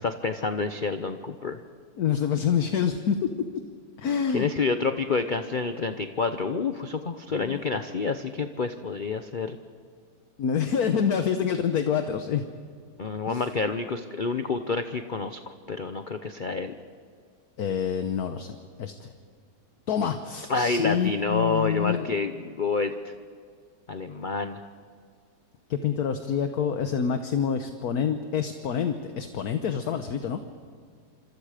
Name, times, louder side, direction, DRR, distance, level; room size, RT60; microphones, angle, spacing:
voice 1, 0.0-1.6 4.3-9.6 13.0-15.4 15.7-16.7 20.5-23.1 23.9-24.6, left 4 dB, 40° left, 8 dB, 0.7 m, -28 dB
voice 2, 2.0-3.2 4.0-4.5 7.4-7.6 10.4-12.4 13.3-13.4 17.6-19.1 19.9-22.2 25.7-30.5, left 7 dB, 60° left, 7 dB, 1.4 m, -27 dB
26.5 x 26.0 x 5.0 m, 2.1 s
omnidirectional pair, 1.9 m